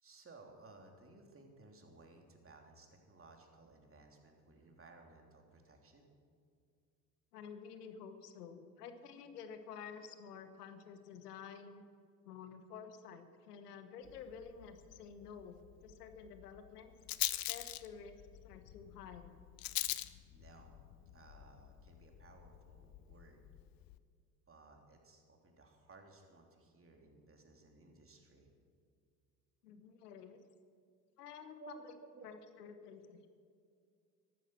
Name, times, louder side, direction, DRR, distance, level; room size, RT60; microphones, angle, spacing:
voice 1, 0.0-6.1 19.8-20.7 21.1-23.4 24.5-28.5 31.6-31.8 32.1-32.3, right 3 dB, 30° right, 2 dB, 3.1 m, -59 dB
voice 2, 7.3-11.8 12.2-15.5 15.8-16.9 17.5-19.3 29.6-30.4 31.2-31.9 32.2-33.3, left 6 dB, 90° left, 9 dB, 1.2 m, -51 dB
Rattle, 14.0-24.0, left 15 dB, 50° left, 0.8 m, -44 dB
14.0 x 12.5 x 6.2 m, 2.3 s
hypercardioid pair, 70°, 45 cm